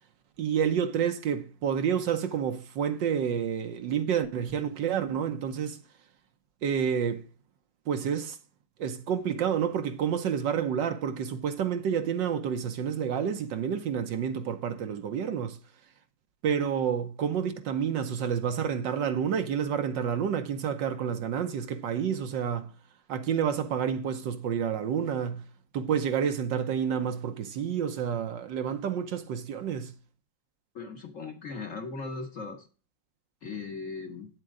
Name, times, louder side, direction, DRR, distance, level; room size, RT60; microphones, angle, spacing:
voice 1, 0.4-5.8 6.6-7.2 7.9-8.4 8.8-15.6 16.4-22.7 23.1-25.4 25.7-29.9, right 8 dB, 70° right, 1.4 m, -29 dB
voice 2, 30.7-32.7 33.4-34.3, left 4 dB, 45° left, 1.4 m, -38 dB
9.1 x 7.7 x 3.7 m
omnidirectional pair, 2.2 m